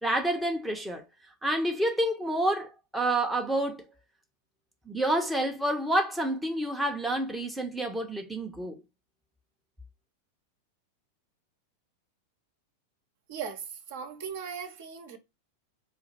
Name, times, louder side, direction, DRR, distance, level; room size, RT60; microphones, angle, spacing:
voice 1, 0.0-1.0 1.4-3.8 4.9-8.8, right 1 dB, 5° right, 0.7 m, -28 dB
voice 2, 13.3-15.2, right 7 dB, 55° right, 0.8 m, -38 dB
4.0 x 2.5 x 4.3 m
figure-of-eight pair, 90°, 0 cm